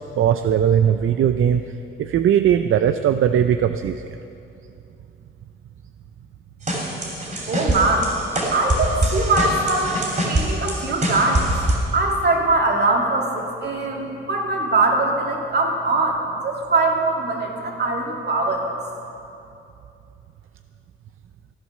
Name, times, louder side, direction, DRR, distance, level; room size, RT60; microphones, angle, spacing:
voice 1, 0.2-1.6 2.0-4.0, right 9 dB, 75° right, 9 dB, 0.5 m, -18 dB
sound 1, 6.7-11.8, right 1 dB, 35° right, 3.2 m, -24 dB
voice 2, 7.5-8.1 8.5-11.5 11.9-18.8, right 2 dB, 50° right, 0 dB, 2.2 m, -22 dB
15.5 x 11.5 x 6.6 m, 2.7 s
wide cardioid pair, 150°, 21 cm